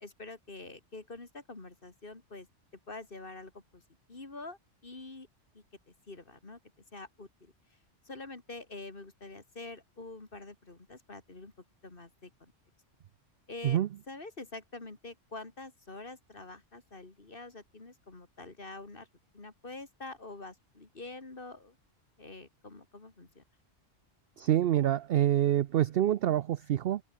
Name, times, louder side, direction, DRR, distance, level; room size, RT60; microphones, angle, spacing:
voice 1, 0.0-2.5 2.9-3.8 4.1-5.3 5.5-6.6 6.9-7.5 8.0-11.5 11.8-12.5 13.5-13.8 14.1-19.1 19.3-21.8 22.2-23.4, left 3 dB, 45° left, 2.7 m, -46 dB
voice 2, 24.4-27.0, right 11 dB, 60° right, 0.7 m, -26 dB
open air
omnidirectional pair, 1.3 m